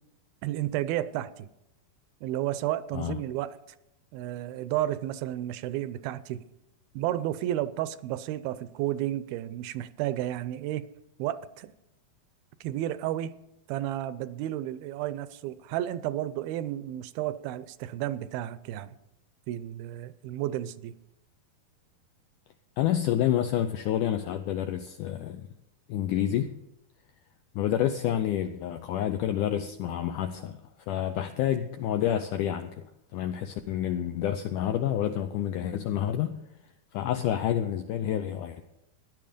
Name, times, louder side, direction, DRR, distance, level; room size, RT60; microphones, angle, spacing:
voice 1, 0.4-1.5 2.2-3.6 4.1-6.4 6.9-10.9 11.2-11.7 12.6-13.3 13.7-19.0 19.5-20.9, right 13 dB, 80° right, 2.4 m, -32 dB
voice 2, 22.8-25.5 25.9-26.5 27.6-30.6 30.9-32.8 33.1-36.4 36.9-38.6, left 11 dB, 85° left, 1.8 m, -28 dB
16.0 x 10.5 x 5.1 m
omnidirectional pair, 4.3 m